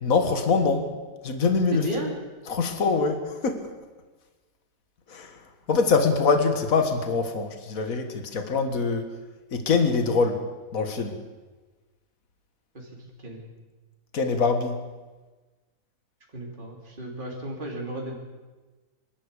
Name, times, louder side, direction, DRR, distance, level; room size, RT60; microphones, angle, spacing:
voice 1, 0.0-0.9 1.2-1.9 2.5-3.7 5.1-9.1 9.5-10.4 10.7-11.2 14.1-14.8, left 4 dB, 60° left, 7 dB, 2.1 m, -24 dB
voice 2, 1.7-2.1 12.7-12.9 13.2-13.4 16.3-18.2, right 1 dB, 30° right, -1 dB, 3.5 m, -33 dB
25.0 x 13.0 x 8.4 m, 1.3 s
omnidirectional pair, 1.6 m